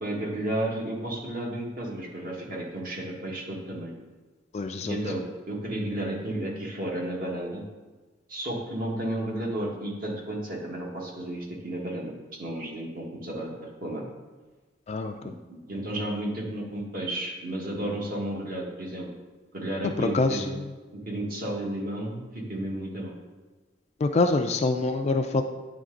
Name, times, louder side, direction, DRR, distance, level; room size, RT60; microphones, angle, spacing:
voice 1, 0.0-4.0 4.9-7.6 8.3-12.1 12.4-14.0 15.2-15.3 15.7-19.1 19.5-20.6 20.9-23.1, right 1 dB, 50° right, -2 dB, 1.4 m, -32 dB
voice 2, 4.5-5.0 14.9-15.3 20.0-20.5 24.0-25.4, left 3 dB, 35° left, 6 dB, 0.3 m, -25 dB
9.4 x 3.3 x 3.8 m, 1.3 s
head